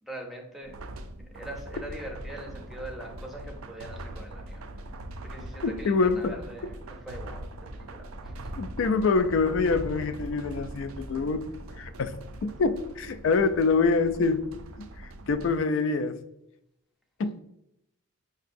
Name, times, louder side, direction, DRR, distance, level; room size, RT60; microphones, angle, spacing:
voice 1, 0.0-0.7 1.3-4.9 5.2-8.5, right 1 dB, ahead, 0.6 m, -42 dB
sound 1, 0.6-15.6, right 1 dB, 80° right, 0.4 m, -41 dB
voice 2, 5.6-6.4 8.6-11.5 11.8-12.1 12.4-14.5 14.8-16.2 17.2-17.4, left 4 dB, 65° left, 0.3 m, -25 dB
5.7 x 2.7 x 2.5 m
head